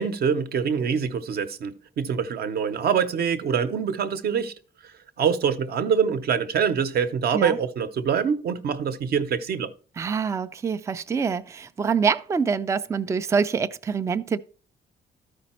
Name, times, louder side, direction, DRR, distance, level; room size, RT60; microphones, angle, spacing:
voice 1, 0.0-4.5 4.8-9.7, right 7 dB, 55° right, 0.7 m, -25 dB
voice 2, 10.0-14.4, right 6 dB, 15° right, 0.3 m, -25 dB
13.0 x 5.1 x 4.3 m
cardioid pair, 165°, 19 cm